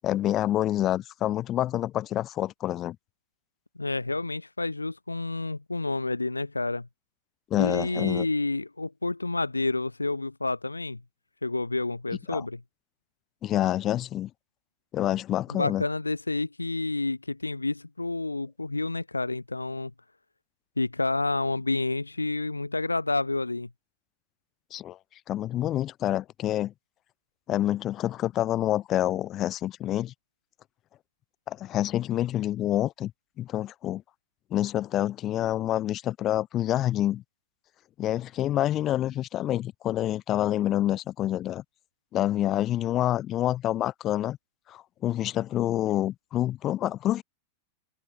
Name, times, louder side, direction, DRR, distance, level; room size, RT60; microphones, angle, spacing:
voice 1, 0.0-3.0 7.5-8.3 12.3-12.4 13.4-14.3 14.9-15.8 24.7-25.0 25.3-26.7 27.5-30.1 31.5-33.1 33.4-34.0 34.5-37.2 38.0-41.6 42.1-44.4 44.7-47.2, left 13 dB, 30° left, 1.1 m, -27 dB
voice 2, 3.8-6.9 7.6-11.0 11.4-12.6 15.5-19.9 20.8-23.7, left 2 dB, 80° left, 0.6 m, -29 dB
figure-of-eight pair, 90°, 0 cm